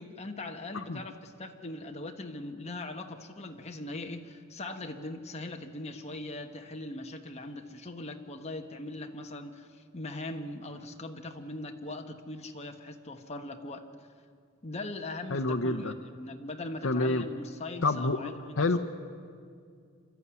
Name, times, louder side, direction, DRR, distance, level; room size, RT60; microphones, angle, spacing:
voice 1, 0.0-9.7 9.9-13.8 14.6-18.8, left 2 dB, 30° left, 4 dB, 1.3 m, -40 dB
voice 2, 15.3-15.9 16.8-17.2 17.8-18.3 18.6-18.8, left 2 dB, 70° left, 9 dB, 0.9 m, -28 dB
26.5 x 13.0 x 9.6 m, 2.2 s
head